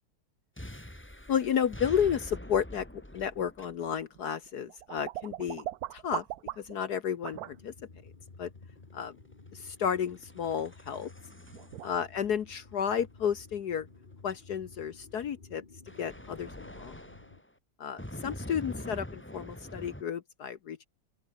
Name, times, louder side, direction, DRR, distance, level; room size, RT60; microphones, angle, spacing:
sound 1, 0.6-4.2 6.1-14.5 15.9-17.5 18.0-20.0, left 1 dB, 5° left, 2.6 m, -45 dB
voice 1, 1.3-5.7 5.9-6.2 6.6-7.7 8.4-8.5 8.9-9.1 9.5-11.1 11.8-13.9 14.2-15.6 16.0-17.0 17.8-20.9, left 8 dB, 65° left, 1.6 m, -32 dB
sound 2, 4.1-6.8 7.2-7.5 11.0-11.1 11.5-11.9, right 13 dB, 65° right, 1.0 m, -39 dB
sound 3, 7.3-17.4, left 3 dB, 25° left, 1.8 m, -53 dB
open air
omnidirectional pair, 2.0 m